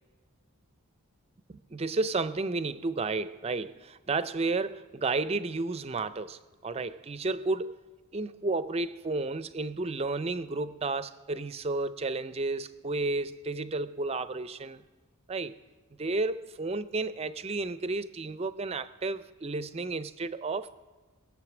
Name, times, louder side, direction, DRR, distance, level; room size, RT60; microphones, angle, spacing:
voice 1, 1.5-7.8 8.1-14.8 15.3-15.6 16.0-20.9, right 3 dB, 25° right, 0.4 m, -32 dB
21.5 x 7.4 x 6.0 m
head